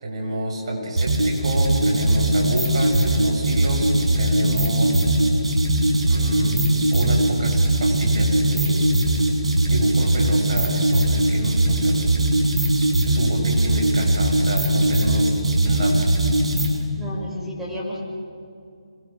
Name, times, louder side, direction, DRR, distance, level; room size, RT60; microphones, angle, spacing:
voice 1, 0.0-5.1 6.1-8.9 9.7-12.0 13.1-15.3 15.6-16.1, right 1 dB, 55° right, 0 dB, 7.3 m, -28 dB
sound 1, 1.0-16.8, right 1 dB, 75° right, 6.7 m, -20 dB
voice 2, 17.0-18.0, equal, 5° right, -5 dB, 6.1 m, -31 dB
27.0 x 23.5 x 6.1 m, 2.4 s
figure-of-eight pair, 155°, 3 cm